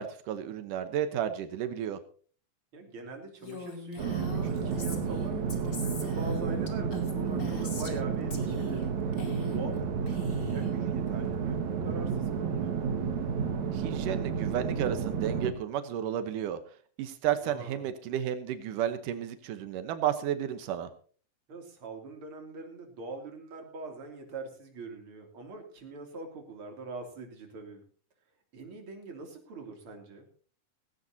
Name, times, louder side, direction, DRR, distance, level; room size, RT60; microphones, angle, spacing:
voice 1, 0.0-2.0 13.7-16.6 17.0-20.9, right 10 dB, 90° right, 10 dB, 2.7 m, -32 dB
voice 2, 2.7-12.8 17.4-17.8 21.5-27.8 28.5-30.2, right 3 dB, 45° right, 3 dB, 3.6 m, -43 dB
Female speech woman speaking, 3.4-8.0 8.3-8.9 9.1-9.8 10.1-10.7, left 4 dB, 30° left, 2.6 m, -42 dB
sound 1, 4.0-15.5, right 6 dB, 65° right, 2.9 m, -31 dB
17.0 x 17.0 x 2.8 m, 0.42 s
omnidirectional pair, 3.6 m